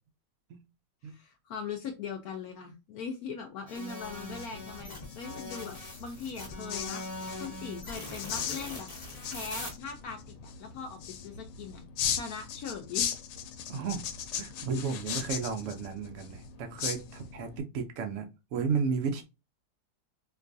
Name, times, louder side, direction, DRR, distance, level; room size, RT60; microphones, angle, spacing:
voice 1, 1.0-11.8 12.1-13.1, left 6 dB, 70° left, 0.9 m, -40 dB
sound 1, 3.7-9.7, left 2 dB, 25° left, 0.9 m, -42 dB
sound 2, 4.0-17.6, left 8 dB, 85° left, 1.3 m, -38 dB
voice 2, 13.7-14.0 14.4-18.2 18.5-19.2, right 5 dB, 85° right, 0.6 m, -33 dB
4.4 x 2.3 x 2.5 m
omnidirectional pair, 1.9 m